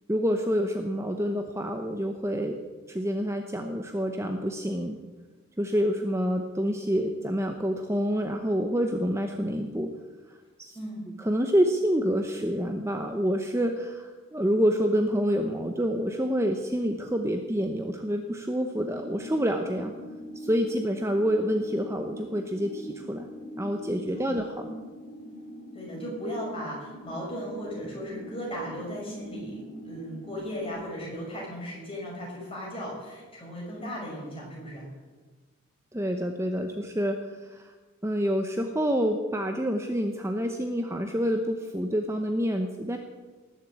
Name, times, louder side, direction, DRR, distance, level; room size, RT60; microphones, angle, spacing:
voice 1, 0.1-2.6 2.9-5.0 5.6-9.9 10.6-10.7 11.2-19.9 20.4-23.3 23.6-24.8 35.9-37.7 38.0-43.0, equal, 15° right, 4 dB, 0.8 m, -27 dB
voice 2, 10.7-11.1 24.1-24.4 25.7-34.9, equal, 25° left, -3 dB, 5.9 m, -36 dB
sound 1, 19.0-30.7, equal, 65° left, 2.7 m, -43 dB
19.0 x 7.6 x 8.5 m, 1.3 s
head